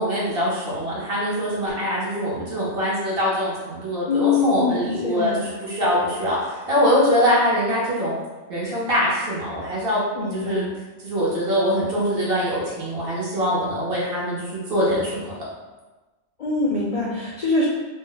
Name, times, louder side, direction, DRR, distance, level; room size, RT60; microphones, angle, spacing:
voice 1, 0.0-8.1 8.5-10.0 10.3-10.7 11.0-15.3, equal, 60° right, -6 dB, 1.1 m, -23 dB
voice 2, 4.1-5.5 10.1-10.7 16.4-17.6, left 4 dB, 55° left, -6 dB, 0.4 m, -23 dB
2.6 x 2.0 x 3.8 m, 1.2 s
omnidirectional pair, 1.1 m